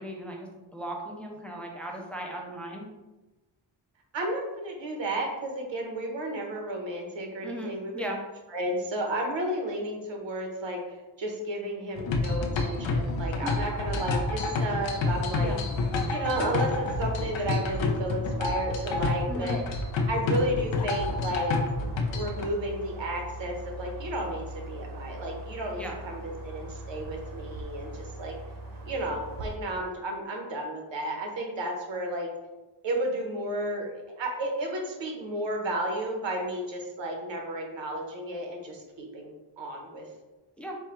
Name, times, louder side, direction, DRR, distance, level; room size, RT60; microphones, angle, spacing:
voice 1, 0.0-2.9 7.4-8.2 13.4-13.6 15.4-15.6 19.3-19.6 25.8-26.0 40.6-40.8, right 1 dB, 5° left, 0 dB, 0.4 m, -37 dB
voice 2, 4.1-8.0 8.5-15.6 16.1-19.6 20.1-21.7 22.1-28.4 28.8-32.3 32.8-40.1, right 1 dB, 70° right, 1 dB, 1.1 m, -32 dB
sound 1, 12.0-22.4, left 3 dB, 75° left, 0.7 m, -29 dB
sound 2, 13.5-29.6, right 1 dB, 45° right, 0.9 m, -41 dB
4.8 x 2.2 x 4.3 m, 1.1 s
wide cardioid pair, 170°, 45 cm